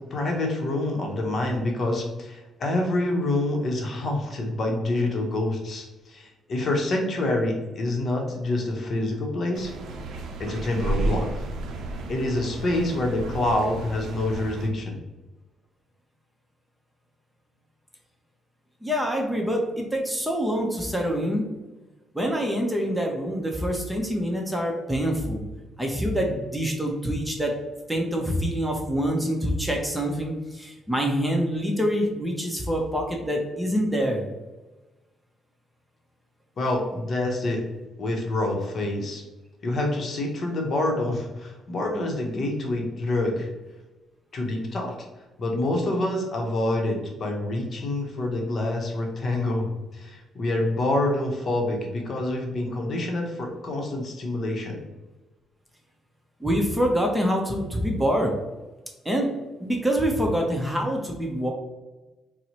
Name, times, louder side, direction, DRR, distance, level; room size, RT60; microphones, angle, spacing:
voice 1, 0.0-9.7 10.4-11.4 12.1-15.0 36.6-37.6 38.0-39.2 39.6-43.5 44.3-44.9 45.4-54.8, left 1 dB, 50° left, 1 dB, 0.7 m, -27 dB
sound 1, 9.5-14.7, right 2 dB, 75° right, 0.5 m, -32 dB
voice 2, 18.8-21.4 22.1-25.4 25.8-27.5 27.9-34.2 56.4-58.3 59.0-59.3 59.6-61.5, equal, 5° right, 1 dB, 0.6 m, -25 dB
4.1 x 2.0 x 2.8 m, 1.1 s
cardioid pair, 90°, 0 cm